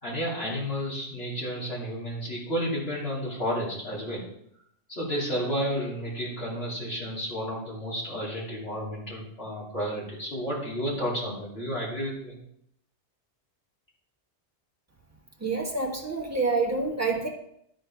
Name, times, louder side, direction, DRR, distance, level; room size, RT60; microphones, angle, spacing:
voice 1, 0.0-4.2 4.9-12.4, equal, 60° left, -6 dB, 3.4 m, -31 dB
voice 2, 15.4-17.3, right 3 dB, 15° right, -1 dB, 1.4 m, -27 dB
11.5 x 4.5 x 4.8 m, 0.72 s
omnidirectional pair, 1.1 m